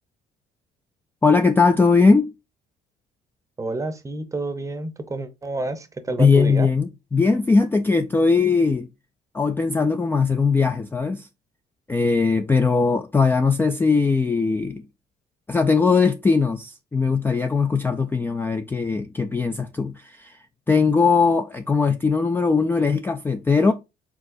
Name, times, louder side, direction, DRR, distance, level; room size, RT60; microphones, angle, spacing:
voice 1, 1.2-2.3 6.2-8.9 9.3-11.3 11.9-14.8 15.5-20.4 20.7-23.7, left 4 dB, 15° left, 0.3 m, -20 dB
voice 2, 3.6-6.7, right 2 dB, 20° right, 0.7 m, -29 dB
4.6 x 4.0 x 2.6 m
cardioid pair, 110°, 17 cm